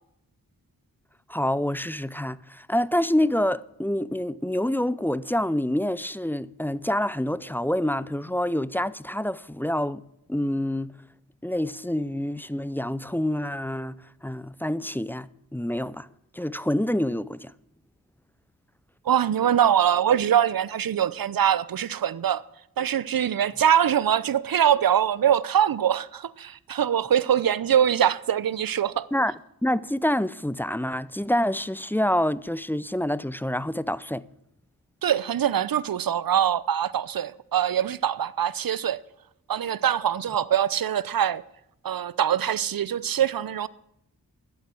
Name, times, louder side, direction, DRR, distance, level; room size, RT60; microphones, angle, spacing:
voice 1, 1.3-10.0 10.3-10.9 11.4-14.0 14.2-16.1 16.3-17.5 29.1-29.3 29.6-34.2, left 1 dB, 5° left, 0.4 m, -27 dB
voice 2, 19.1-22.4 22.8-29.1 35.0-39.0 39.5-41.4 41.8-43.7, right 9 dB, 65° right, 0.7 m, -23 dB
11.5 x 8.2 x 7.5 m
cardioid pair, 50°, 38 cm